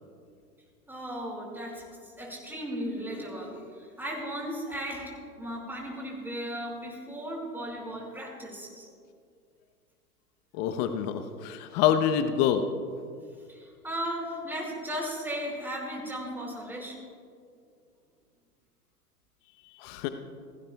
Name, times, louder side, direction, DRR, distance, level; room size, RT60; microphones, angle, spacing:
voice 1, 0.9-8.9 13.5-17.0, equal, 5° right, -2 dB, 5.0 m, -36 dB
voice 2, 10.5-12.6 19.8-20.1, left 9 dB, 35° left, 8 dB, 0.9 m, -26 dB
29.0 x 17.0 x 2.3 m, 2.3 s
figure-of-eight pair, 100°, 47 cm